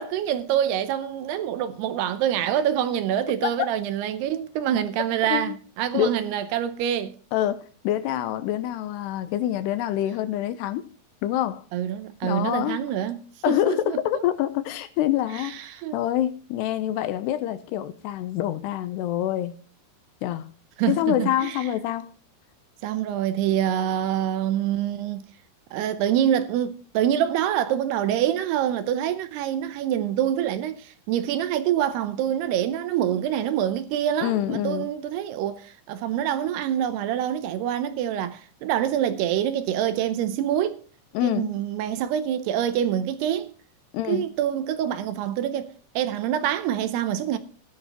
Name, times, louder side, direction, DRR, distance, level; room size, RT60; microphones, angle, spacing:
voice 1, 0.0-7.1 11.7-14.2 15.3-16.0 20.8-21.7 22.8-25.2 25.7-40.8 41.2-43.5 44.1-47.4, right 10 dB, 80° right, 2.6 m, -26 dB
voice 2, 7.3-10.9 11.2-11.6 12.2-12.8 13.4-15.5 15.9-19.5 20.2-20.5 20.9-22.2 34.2-34.9 41.1-41.5 43.9-44.3, left 12 dB, 80° left, 2.7 m, -26 dB
16.5 x 11.0 x 2.9 m
omnidirectional pair, 5.0 m